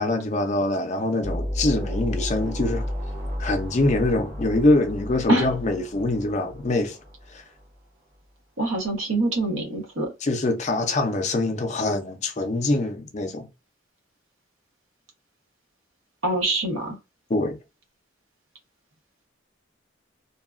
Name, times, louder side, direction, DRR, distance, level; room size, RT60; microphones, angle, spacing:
voice 1, 0.0-2.9 3.4-7.0 7.3-7.4 10.2-13.5 17.3-17.6, left 2 dB, 35° left, 0.4 m, -24 dB
sound 1, 1.2-7.7, equal, 55° right, 1.3 m, -32 dB
voice 2, 8.6-10.1 16.2-17.0, right 2 dB, 80° right, 0.9 m, -24 dB
2.7 x 2.3 x 2.3 m
head